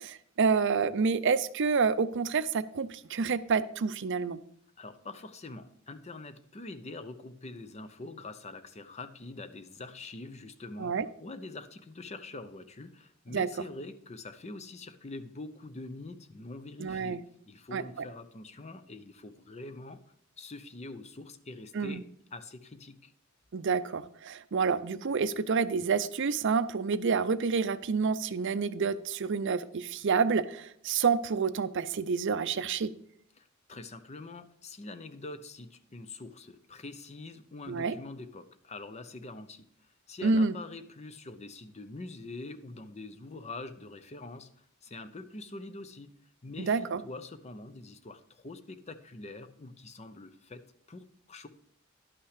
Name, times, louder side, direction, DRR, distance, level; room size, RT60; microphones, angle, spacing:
voice 1, 0.0-4.4 10.8-11.1 13.3-13.5 16.8-17.2 17.7-17.8 21.7-22.0 23.5-32.9 37.7-38.0 40.2-40.5 46.6-47.0, right 5 dB, 60° right, 13 dB, 0.5 m, -28 dB
voice 2, 4.8-17.2 17.5-20.0 20.4-23.1 33.4-39.7 40.1-46.1 46.4-51.5, left 2 dB, 30° left, 10 dB, 0.6 m, -44 dB
11.0 x 5.8 x 4.9 m, 0.67 s
head